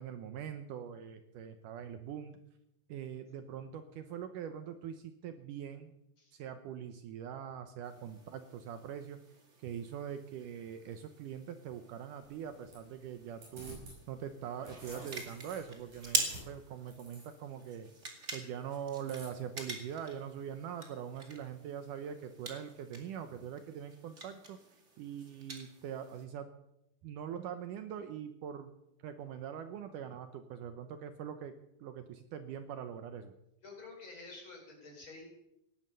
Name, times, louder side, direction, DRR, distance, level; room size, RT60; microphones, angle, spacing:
voice 1, 0.0-2.4 2.9-5.9 6.3-9.2 9.6-13.8 14.1-17.9 18.3-24.6 25.0-26.5 27.0-28.7 29.0-31.5 31.8-33.3, right 8 dB, 70° right, 9 dB, 2.2 m, -43 dB
sound 1, 7.8-26.2, right 2 dB, 25° right, 2.0 m, -45 dB
sound 2, 12.2-14.0 14.4-17.7 19.1-19.6, right 1 dB, 55° right, 6.9 m, -52 dB
voice 2, 33.6-35.3, left 3 dB, 35° left, 1 dB, 5.4 m, -50 dB
17.5 x 11.0 x 6.8 m, 0.83 s
omnidirectional pair, 4.1 m